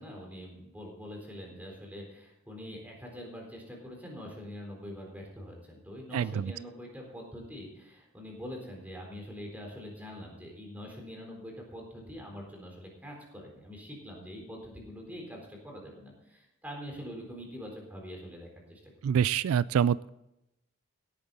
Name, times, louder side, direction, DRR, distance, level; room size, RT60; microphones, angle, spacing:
voice 1, 0.0-18.9, equal, 10° right, 0 dB, 3.9 m, -44 dB
voice 2, 6.1-6.5 19.0-20.1, right 8 dB, 80° right, 19 dB, 0.3 m, -26 dB
17.5 x 8.9 x 4.1 m, 0.88 s
head